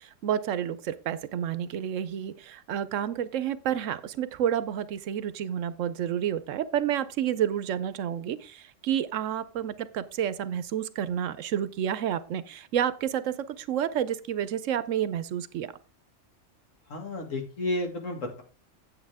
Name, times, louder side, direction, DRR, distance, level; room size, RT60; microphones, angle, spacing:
voice 1, 0.2-15.7, right 10 dB, 75° right, 15 dB, 1.0 m, -30 dB
voice 2, 16.9-18.4, left 2 dB, 80° left, 3 dB, 2.3 m, -32 dB
8.9 x 8.4 x 3.5 m, 0.34 s
omnidirectional pair, 1.3 m